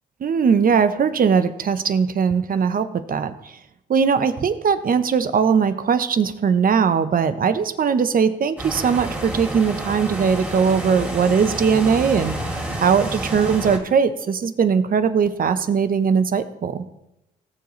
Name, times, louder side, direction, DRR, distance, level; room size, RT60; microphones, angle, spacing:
voice 1, 0.2-3.3 3.9-12.4 12.8-16.8, right 6 dB, 50° right, 11 dB, 0.9 m, -20 dB
sound 1, 8.6-13.8, right 1 dB, 10° right, 3.0 m, -29 dB
18.5 x 7.1 x 3.2 m, 0.88 s
supercardioid pair, 65°, 18 cm